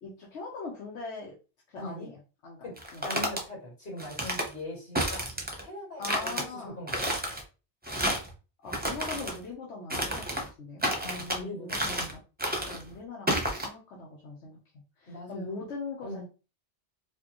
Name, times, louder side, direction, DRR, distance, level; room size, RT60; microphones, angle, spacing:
voice 1, 0.0-1.3 1.7-2.6 2.9-3.0 6.0-6.8 8.6-11.2 11.6-12.2 12.7-14.6 15.0-16.2, left 3 dB, 80° left, -3 dB, 1.2 m, -41 dB
voice 2, 1.7-2.1 2.6-2.8 3.0-5.3 5.6-7.1 11.0-12.2 15.1-15.6 16.0-16.3, left 1 dB, 55° left, -5 dB, 2.5 m, -41 dB
sound 1, 2.8-3.4 4.0-4.5 5.0-5.6 6.0-6.4 6.9-7.4 7.8-8.3 8.7-9.4 9.9-10.5 10.8-11.4 11.7-12.1 12.4-12.8 13.3-13.7, equal, 10° right, 0.7 m, -30 dB
4.6 x 2.3 x 3.0 m, 0.32 s
omnidirectional pair, 1.2 m